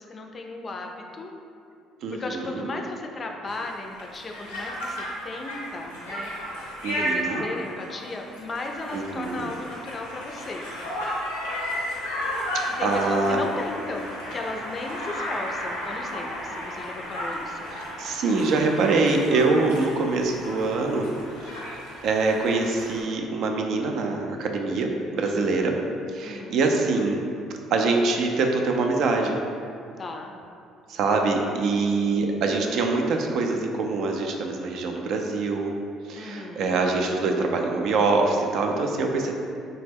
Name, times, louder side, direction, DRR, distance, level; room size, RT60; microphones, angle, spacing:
voice 1, 0.0-1.3 2.1-5.0 5.2-6.6 6.9-10.7 12.8-17.7 25.2-25.7 26.2-26.6 30.0-30.3 31.7-32.1 36.2-36.8, left 2 dB, 40° left, 2 dB, 0.4 m, -35 dB
voice 2, 2.0-2.7 6.8-7.4 8.9-9.5 12.8-13.4 17.7-21.1 21.4-21.6 22.0-25.7 26.1-27.2 27.7-29.4 30.9-35.7 36.1-39.3, right 3 dB, 65° right, 2 dB, 0.3 m, -24 dB
Conversation, 3.5-23.0, equal, 90° left, 0.5 m, -34 dB
3.2 x 2.1 x 3.4 m, 2.4 s
hypercardioid pair, 60°, 0 cm